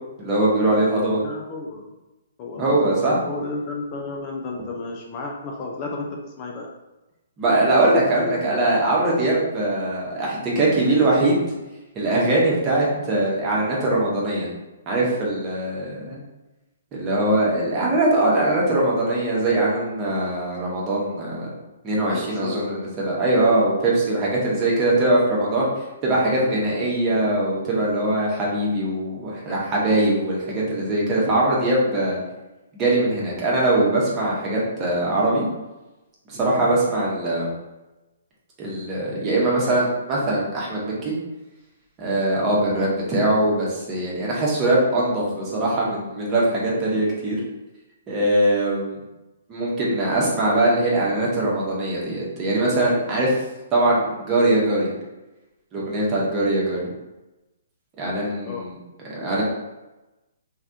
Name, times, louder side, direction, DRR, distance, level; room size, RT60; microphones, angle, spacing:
voice 1, 0.2-1.2 2.6-3.2 7.4-11.4 11.9-14.5 14.9-16.2 16.9-21.5 21.8-25.7 26.0-32.2 32.7-35.4 36.3-37.5 38.6-41.1 42.0-47.4 48.1-49.0 49.5-53.4 53.7-54.9 55.7-56.8 58.0-58.7 59.1-59.4, right 1 dB, 25° right, -5 dB, 1.0 m, -21 dB
voice 2, 1.2-1.9 2.4-6.7 22.1-23.2 58.2-58.6 59.2-59.4, left 3 dB, 35° left, 0 dB, 0.4 m, -33 dB
3.2 x 2.4 x 2.6 m, 1.0 s
figure-of-eight pair, 130°, 0 cm